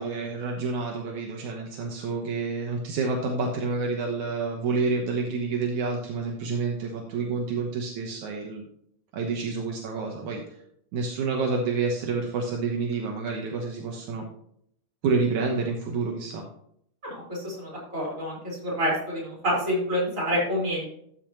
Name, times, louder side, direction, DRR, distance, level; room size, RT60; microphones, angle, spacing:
voice 1, 0.0-8.7 9.1-10.4 10.9-14.2 15.0-16.5, right 4 dB, 75° right, 1 dB, 2.5 m, -28 dB
voice 2, 17.0-18.4 18.6-20.9, equal, 25° right, -4 dB, 4.9 m, -27 dB
13.5 x 7.1 x 3.0 m, 0.70 s
omnidirectional pair, 3.6 m